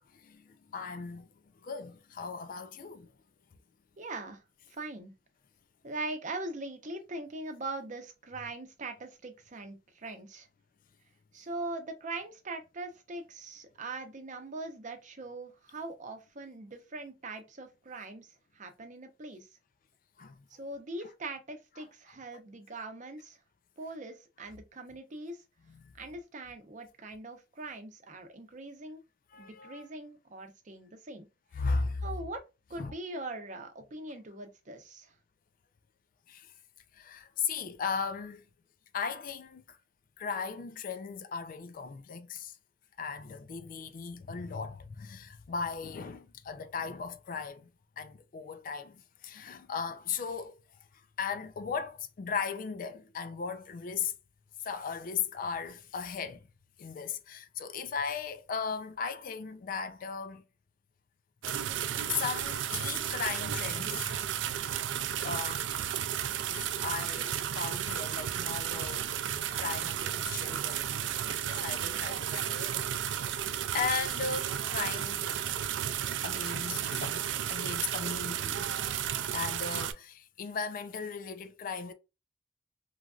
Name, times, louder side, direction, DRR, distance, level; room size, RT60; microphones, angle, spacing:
voice 1, 0.1-1.3 1.6-3.1 20.2-20.4 21.8-21.9 25.7-25.9 29.3-29.8 31.5-32.1 32.8-32.9 36.3-36.5 36.9-38.5 38.9-39.8 40.2-42.6 43.0-47.7 48.0-50.6 51.2-54.1 54.6-56.5 56.8-60.4 61.6-61.8 62.1-64.2 65.2-65.8 66.5-69.1 69.5-71.0 71.4-72.8 73.2-73.5 73.7-75.3 76.2-78.7 79.3-81.9, left 5 dB, 50° left, 0.4 m, -37 dB
voice 2, 4.0-4.4 4.8-5.1 5.8-10.5 11.3-19.5 20.5-23.4 23.8-25.4 26.0-29.0 29.4-31.3 32.0-32.4 32.7-35.1, right 2 dB, 45° right, 0.7 m, -41 dB
sound 1, 61.4-79.9, right 10 dB, 80° right, 0.3 m, -33 dB
3.1 x 2.4 x 2.3 m
head